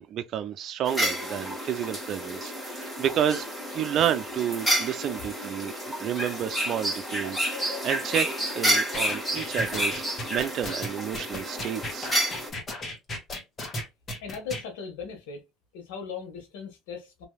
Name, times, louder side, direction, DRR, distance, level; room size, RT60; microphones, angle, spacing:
voice 1, 0.0-3.5 3.7-5.7 6.0-10.0 10.3-12.1, right 10 dB, 55° right, 0.5 m, -30 dB
sound 1, 0.9-12.5, equal, 5° left, 1.5 m, -30 dB
sound 2, 8.9-14.6, left 1 dB, 35° left, 1.4 m, -35 dB
voice 2, 14.2-15.4 15.7-17.3, left 5 dB, 90° left, 1.2 m, -38 dB
3.1 x 2.7 x 2.3 m
supercardioid pair, 95°, 0 cm